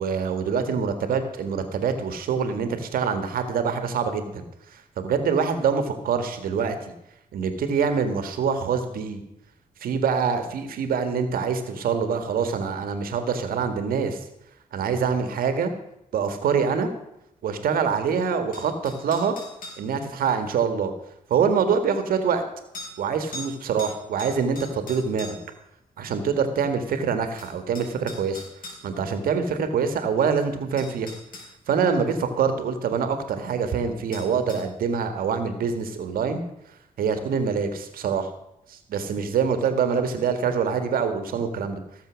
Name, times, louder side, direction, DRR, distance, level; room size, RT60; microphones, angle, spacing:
voice 1, 0.0-4.4 4.7-6.8 7.3-9.2 9.8-14.3 14.7-15.7 16.1-16.9 17.4-19.3 19.8-20.9 21.3-22.4 23.0-25.4 26.0-28.4 28.8-31.1 31.7-36.4 37.0-38.3 38.7-41.8, right 6 dB, 85° right, 8 dB, 1.7 m, -25 dB
sound 1, 18.5-19.9 21.3-21.4 22.7-22.9 23.3-23.5 23.8-25.5 26.9-27.0 27.4-28.8 30.2-30.3 30.8-31.5 34.1-34.6, left 2 dB, 70° left, 4.8 m, -40 dB
16.5 x 7.2 x 6.3 m, 0.84 s
cardioid pair, 80°, 15 cm